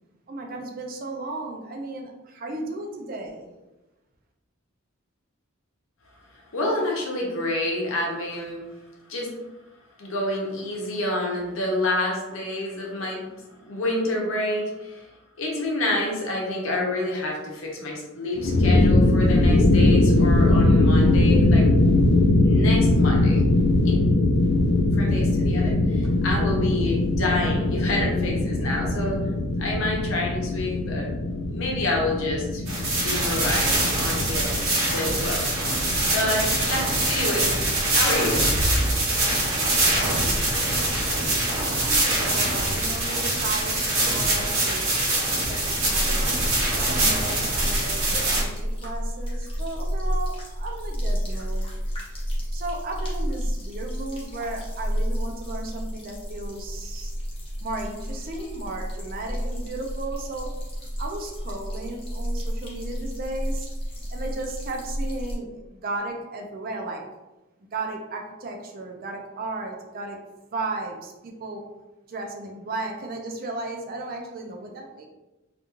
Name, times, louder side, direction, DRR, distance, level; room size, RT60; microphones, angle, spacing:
voice 1, 0.3-3.5 41.5-44.9 45.3-46.2 46.7-51.8 52.5-57.1 57.6-60.5 61.0-63.7 64.1-67.0 67.7-70.2 70.5-71.6 72.1-75.1, right 2 dB, 45° right, 2 dB, 0.4 m, -35 dB
voice 2, 6.5-8.6 9.1-9.3 10.0-13.2 13.7-15.0 15.4-21.7 22.4-23.4 23.8-24.0 24.9-29.2 29.6-31.1 31.5-32.6 33.0-35.5 36.1-37.5 37.9-38.6, left 1 dB, 70° left, -1 dB, 0.7 m, -28 dB
sound 1, 18.4-37.2, left 2 dB, 50° left, 0.3 m, -21 dB
sound 2, 32.7-48.4, right 2 dB, 75° right, 1.0 m, -24 dB
sound 3, 45.9-65.4, equal, 25° left, 0.7 m, -31 dB
2.5 x 2.3 x 2.9 m, 1.0 s
head